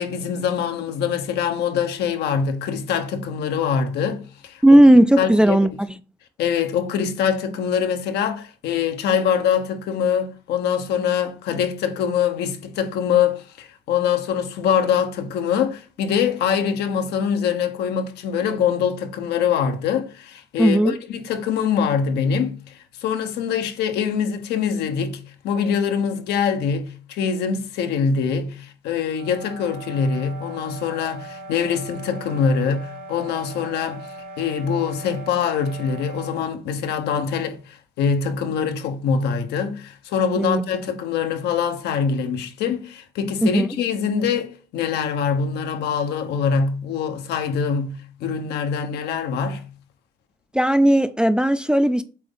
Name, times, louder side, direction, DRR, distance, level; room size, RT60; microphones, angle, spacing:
voice 1, 0.0-4.6 5.2-5.6 6.4-49.6, left 7 dB, 75° left, 1.1 m, -24 dB
voice 2, 4.6-6.0 20.6-20.9 40.4-40.6 43.4-43.7 50.5-52.0, right 1 dB, 5° right, 0.4 m, -15 dB
sound 1, 29.0-36.5, right 1 dB, 70° right, 2.0 m, -39 dB
7.7 x 4.1 x 3.8 m
cardioid pair, 110°, 17 cm